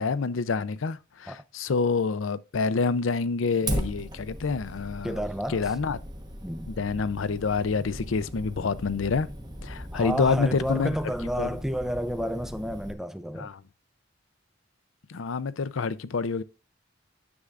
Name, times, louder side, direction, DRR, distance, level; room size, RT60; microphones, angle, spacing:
voice 1, 0.0-5.2 5.5-6.0 6.7-9.3 9.6-11.0 11.4-11.5 13.4-13.6 15.1-16.4, left 4 dB, 85° left, 0.5 m, -27 dB
Fire, 3.7-12.9, equal, 20° right, 1.0 m, -37 dB
voice 2, 5.0-5.7 6.4-6.7 9.9-13.5, equal, ahead, 0.4 m, -31 dB
9.7 x 7.1 x 2.5 m
head